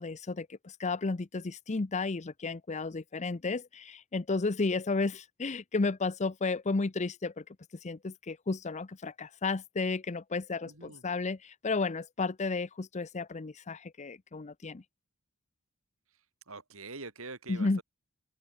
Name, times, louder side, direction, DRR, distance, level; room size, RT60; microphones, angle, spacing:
voice 1, 0.0-7.4 7.8-14.8 17.5-17.8, left 3 dB, 30° left, 0.6 m, -33 dB
voice 2, 10.6-11.0 16.5-17.8, right 3 dB, 65° right, 4.0 m, -44 dB
head